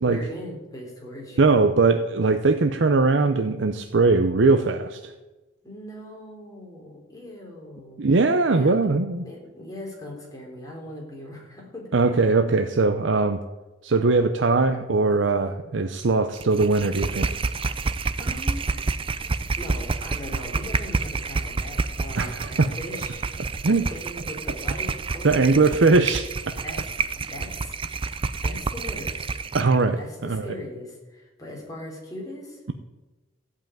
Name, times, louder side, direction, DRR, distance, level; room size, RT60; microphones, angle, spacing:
voice 1, 0.0-1.7 5.6-8.1 8.5-8.8 9.2-11.9 18.2-18.7 19.6-23.2 23.6-25.9 26.6-26.8 27.2-27.8 28.4-29.4 30.0-32.6, left 1 dB, 20° left, -2 dB, 3.5 m, -39 dB
voice 2, 1.4-5.1 8.0-9.2 11.9-13.4 13.8-17.3 22.2-22.7 23.6-23.8 25.2-26.3 29.5-30.5, right 3 dB, 75° right, 7 dB, 0.6 m, -20 dB
sound 1, 16.4-29.7, right 4 dB, 30° right, 0.5 m, -29 dB
14.0 x 5.7 x 9.0 m, 1.1 s
head